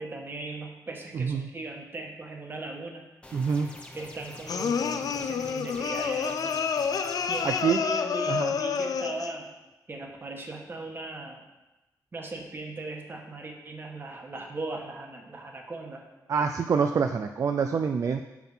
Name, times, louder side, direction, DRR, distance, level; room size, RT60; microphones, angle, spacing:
voice 1, 0.0-3.0 3.9-6.7 7.3-9.5 9.9-11.4 12.1-16.0, right 2 dB, 35° right, 2 dB, 1.2 m, -38 dB
voice 2, 1.1-1.5 3.3-3.7 7.4-7.8 8.3-8.5 16.3-18.2, right 6 dB, 55° right, 7 dB, 0.4 m, -26 dB
sound 1, 3.2-7.6, left 1 dB, 15° left, 0.9 m, -46 dB
sound 2, 4.5-9.4, left 6 dB, 70° left, 0.4 m, -29 dB
7.2 x 5.9 x 5.5 m, 1.0 s
wide cardioid pair, 150°, 7 cm